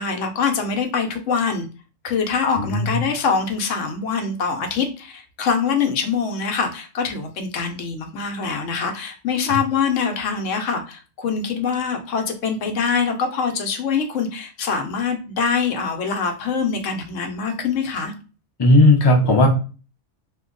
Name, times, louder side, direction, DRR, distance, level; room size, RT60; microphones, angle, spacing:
voice 1, 0.0-1.7 2.0-18.1, left 5 dB, 80° left, 4 dB, 1.0 m, -24 dB
voice 2, 2.6-3.0 9.5-9.6 18.6-19.5, left 1 dB, 30° left, 1 dB, 0.5 m, -15 dB
2.7 x 2.2 x 3.7 m, 0.35 s
omnidirectional pair, 1.3 m